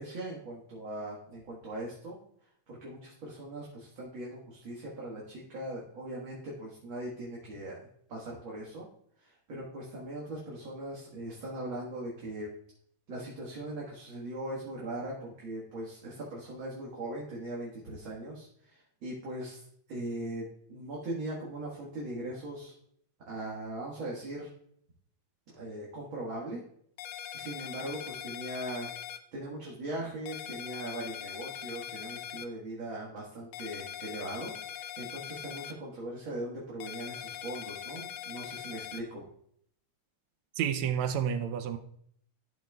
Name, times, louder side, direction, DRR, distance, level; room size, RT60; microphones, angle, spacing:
voice 1, 0.0-2.2 2.7-7.8 8.1-8.9 9.2-12.5 13.1-22.7 23.3-24.5 25.5-26.6 27.3-28.9 29.3-39.3, right 1 dB, 45° right, -4 dB, 2.0 m, -40 dB
sound 1, 27.0-29.2 30.3-32.5 33.5-35.7 36.8-39.0, left 10 dB, 80° left, 1.4 m, -41 dB
voice 2, 40.6-41.8, right 8 dB, 75° right, 9 dB, 1.8 m, -30 dB
12.5 x 7.4 x 2.3 m, 0.66 s
omnidirectional pair, 3.5 m